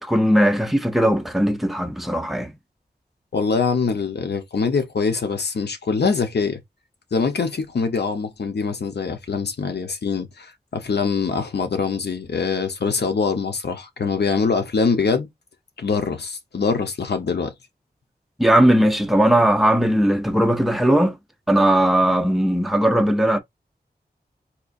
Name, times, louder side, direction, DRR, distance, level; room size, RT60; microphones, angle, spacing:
voice 1, 0.0-2.5 18.4-21.2 21.5-23.4, right 1 dB, ahead, 0.6 m, -18 dB
voice 2, 3.3-6.6 7.1-15.3 15.8-17.5, left 5 dB, 85° left, 0.8 m, -23 dB
4.2 x 2.4 x 2.5 m
wide cardioid pair, 70°, 17 cm